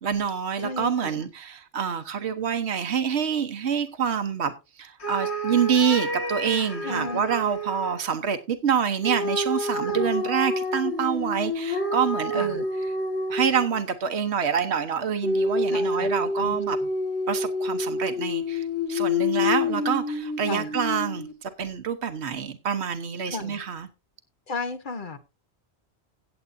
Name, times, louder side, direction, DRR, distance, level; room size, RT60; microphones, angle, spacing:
voice 1, 0.0-12.6 13.3-16.8 17.3-23.9, right 7 dB, 80° right, 1.3 m, -27 dB
voice 2, 0.6-1.3 6.8-7.4 9.8-10.1 12.3-12.6 15.7-16.6 20.5-20.8 23.3-23.6 24.5-25.2, left 3 dB, 50° left, 1.2 m, -34 dB
sound 1, 5.0-8.0 9.0-13.8 15.2-21.3, left 2 dB, 85° left, 1.9 m, -28 dB
17.0 x 8.1 x 2.6 m
omnidirectional pair, 1.1 m